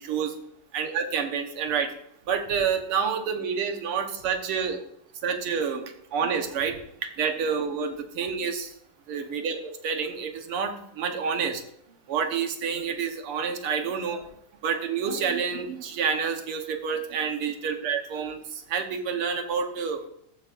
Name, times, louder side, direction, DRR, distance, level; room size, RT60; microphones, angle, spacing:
voice 1, 0.7-1.9 2.3-4.8 5.2-8.7 9.1-11.6 12.1-14.2 14.6-20.0, right 6 dB, 85° right, 5 dB, 2.0 m, -28 dB
14.5 x 8.7 x 2.5 m, 0.72 s
omnidirectional pair, 2.3 m